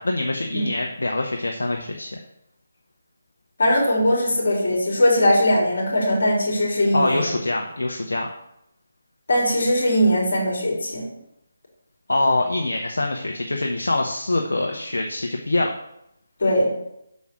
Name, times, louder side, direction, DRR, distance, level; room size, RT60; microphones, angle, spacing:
voice 1, 0.0-2.1 6.9-8.3 12.1-15.7, left 2 dB, 75° left, 2 dB, 0.8 m, -24 dB
voice 2, 3.6-7.3 9.3-11.1 16.4-16.7, left 1 dB, 55° left, -2 dB, 3.5 m, -20 dB
6.4 x 5.2 x 6.2 m, 0.80 s
figure-of-eight pair, 150°, 0 cm